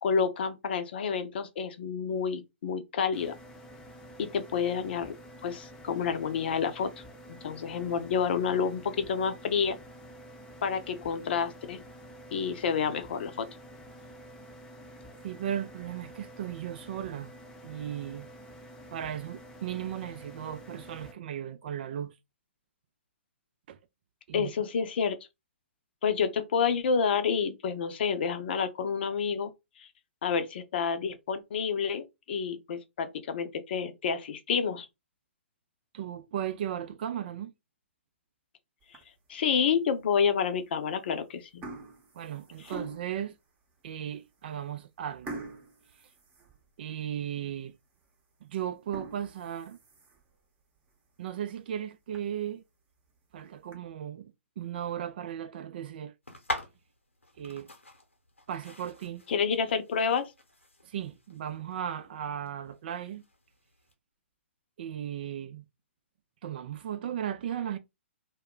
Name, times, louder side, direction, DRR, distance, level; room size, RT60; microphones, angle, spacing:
voice 1, 0.0-3.3 4.2-5.1 5.4-6.9 7.3-9.8 10.6-11.8 12.3-13.5 24.3-25.2 26.0-29.5 29.8-29.9 30.2-34.9 39.3-41.6 59.3-60.3, left 6 dB, 55° left, 0.6 m, -29 dB
sound 1, 3.1-21.1, equal, 10° left, 0.6 m, -49 dB
voice 2, 15.2-17.3 17.6-18.3 18.9-22.1 23.7-23.8 24.3-24.5 35.9-37.5 42.1-43.3 43.8-45.4 46.8-47.7 48.4-49.8 51.2-52.6 53.3-56.1 57.4-57.7 58.5-59.3 60.8-63.2 64.8-65.7 66.4-67.8, right 10 dB, 50° right, 0.4 m, -36 dB
sound 2, 38.8-39.3 39.9-40.0 40.9-41.1 41.4-43.3 43.9-44.0 44.3-44.5 45.3-47.0 47.4-47.5 48.0-48.1 48.7-50.3 50.8-50.9 51.3-51.4 51.7-51.8 52.1-52.2 53.1-53.7, right 2 dB, 20° right, 0.8 m, -44 dB
sound 3, 56.2-63.9, left 1 dB, 90° left, 0.9 m, -43 dB
2.3 x 2.1 x 3.6 m
figure-of-eight pair, 120°, 7 cm